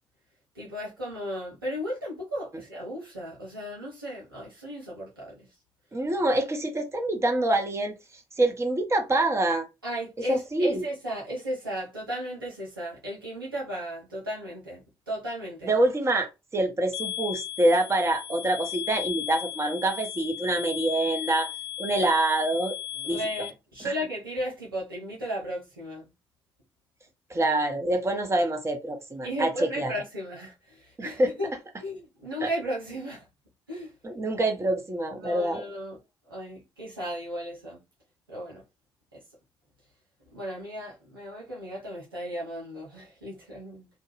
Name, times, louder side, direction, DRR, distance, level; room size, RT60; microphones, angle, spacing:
voice 1, 0.5-5.5 9.8-15.7 23.0-26.1 29.2-31.5 31.8-33.3 33.7-33.9 35.2-36.0 36.3-37.8 38.3-38.6 40.3-43.9, equal, 90° right, 0.7 m, -35 dB
voice 2, 5.9-7.9 8.4-9.7 10.3-10.8 15.6-16.3 16.5-21.5 21.8-22.7 23.0-23.2 27.3-29.9 31.0-31.3 32.4-32.5 34.0-35.6, right 2 dB, 25° right, 0.9 m, -25 dB
sound 1, 16.9-23.5, left 12 dB, 60° left, 0.5 m, -36 dB
2.2 x 2.2 x 3.0 m
figure-of-eight pair, 45°, 11 cm